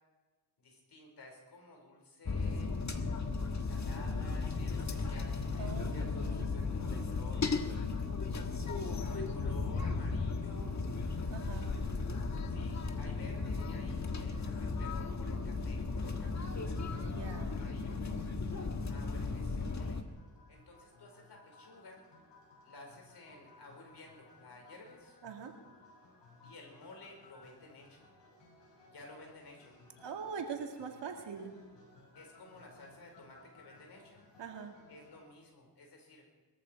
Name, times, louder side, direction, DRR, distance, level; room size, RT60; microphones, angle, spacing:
voice 1, 0.6-2.7 3.6-7.5 8.9-10.8 12.4-16.8 17.4-18.0 18.9-20.0 20.5-22.0 22.6-25.2 26.4-28.1 28.9-29.8 32.1-34.2 34.9-36.3, left 2 dB, 70° left, 1 dB, 5.0 m, -54 dB
sound 1, 2.3-20.0, left 4 dB, 40° left, 1.5 m, -35 dB
voice 2, 5.6-6.5 11.3-11.7 17.0-17.5 25.2-25.5 30.0-31.5 34.4-34.7, right 6 dB, 90° right, 2 dB, 2.3 m, -43 dB
sound 2, 19.3-35.2, left 3 dB, 85° left, 6.4 m, -61 dB
21.5 x 14.0 x 4.6 m, 1.3 s
cardioid pair, 75°, 42 cm